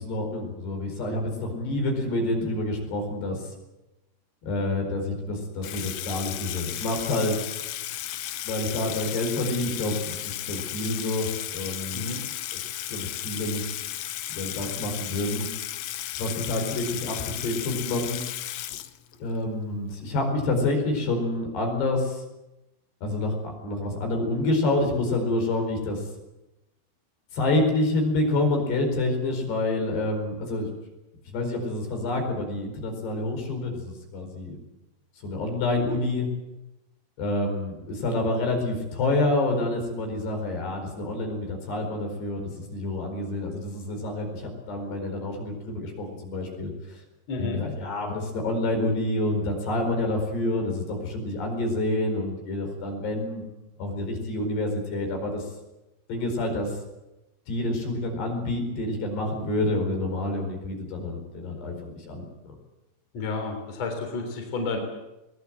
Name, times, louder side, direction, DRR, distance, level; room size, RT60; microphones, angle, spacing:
voice 1, 0.0-3.5 4.5-7.4 8.4-12.1 12.5-13.9 14.4-15.5 16.2-18.2 19.2-22.2 23.0-26.0 27.3-30.7 31.3-34.6 35.2-36.3 37.2-47.0 47.4-53.4 53.8-55.5 56.1-56.7 57.5-62.6, left 2 dB, 60° left, 3 dB, 6.5 m, -28 dB
Water tap faucet / Sink (filling or washing), 5.6-19.4, left 13 dB, 90° left, 1.9 m, -34 dB
voice 2, 47.3-47.6 63.1-64.8, left 3 dB, 35° left, 3 dB, 4.3 m, -31 dB
22.5 x 20.0 x 7.8 m, 0.97 s
omnidirectional pair, 5.4 m